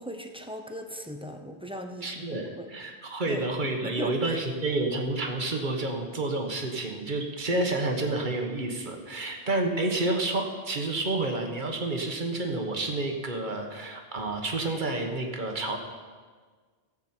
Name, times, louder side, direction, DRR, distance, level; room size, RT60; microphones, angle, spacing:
voice 1, 0.0-2.7 3.3-3.5 3.8-4.4, equal, 5° right, 4 dB, 0.7 m, -39 dB
voice 2, 2.0-15.8, right 2 dB, 50° right, 3 dB, 1.4 m, -29 dB
15.5 x 8.1 x 4.4 m, 1.5 s
omnidirectional pair, 1.1 m